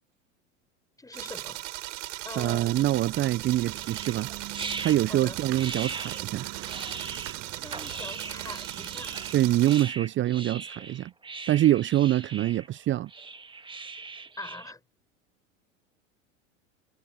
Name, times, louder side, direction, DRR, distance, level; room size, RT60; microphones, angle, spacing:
voice 1, 1.0-1.6 2.2-2.8 5.1-5.4 7.5-9.3 14.4-14.8, left 2 dB, 10° left, 5.6 m, -43 dB
sound 1, 1.1-9.8, right 17 dB, 65° right, 5.1 m, -38 dB
voice 2, 2.4-4.3 4.8-6.5 9.3-11.1 11.5-13.1, right 14 dB, 30° right, 0.8 m, -25 dB
sound 2, 2.4-9.4, right 19 dB, 45° right, 6.1 m, -44 dB
sound 3, 3.7-14.7, right 4 dB, 10° right, 1.9 m, -40 dB
hypercardioid pair, 90°, 40 cm